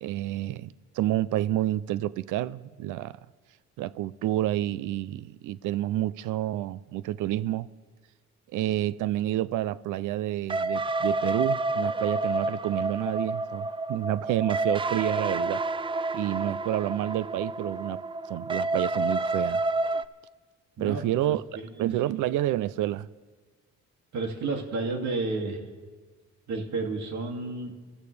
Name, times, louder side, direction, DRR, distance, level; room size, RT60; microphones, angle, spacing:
voice 1, 0.0-3.2 3.8-7.7 8.5-15.6 16.1-18.0 18.3-19.6 20.8-21.4 21.8-23.1, right 14 dB, 85° right, 0.5 m, -29 dB
sound 1, 10.5-20.1, right 2 dB, 20° right, 0.3 m, -29 dB
voice 2, 20.8-21.3 21.8-21.9 24.1-25.6 26.5-27.7, right 3 dB, 70° right, 2.4 m, -31 dB
26.0 x 14.0 x 3.3 m
cardioid pair, 90°, 30 cm